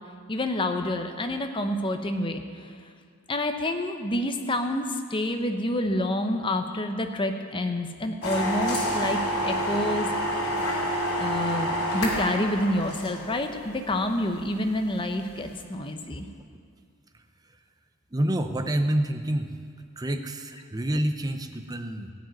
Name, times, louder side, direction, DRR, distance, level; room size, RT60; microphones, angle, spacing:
voice 1, 0.3-2.7 3.3-10.1 11.2-16.3, left 1 dB, 20° left, 6 dB, 0.7 m, -28 dB
sound 1, 8.2-15.6, equal, 75° left, 2.6 m, -29 dB
voice 2, 18.1-19.5 20.0-22.1, right 1 dB, 15° right, 7 dB, 0.6 m, -27 dB
15.5 x 5.3 x 9.3 m, 2.1 s
head